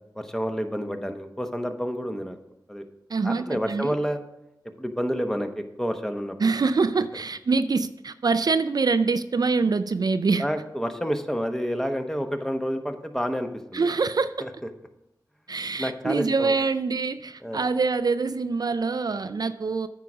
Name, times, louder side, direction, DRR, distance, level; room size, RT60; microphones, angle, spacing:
voice 1, 0.1-2.4 2.7-2.9 3.2-4.2 4.8-6.4 10.4-13.9 14.4-14.5 15.8-16.5 17.4-17.6, equal, 5° left, 6 dB, 1.0 m, -29 dB
voice 2, 3.1-3.9 6.4-10.5 13.7-14.3 15.5-19.9, right 4 dB, 60° right, 11 dB, 0.4 m, -25 dB
9.2 x 4.8 x 6.1 m, 0.86 s
cardioid pair, 45°, 8 cm